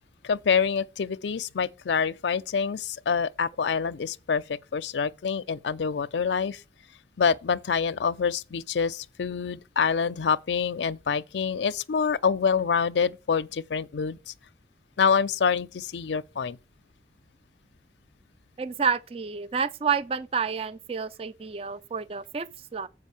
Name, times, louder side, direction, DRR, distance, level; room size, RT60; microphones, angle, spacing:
voice 1, 0.2-6.6 7.2-14.3 15.0-16.6, left 6 dB, 85° left, 0.5 m, -26 dB
voice 2, 18.6-22.9, right 6 dB, 35° right, 0.4 m, -29 dB
7.4 x 4.9 x 6.9 m
head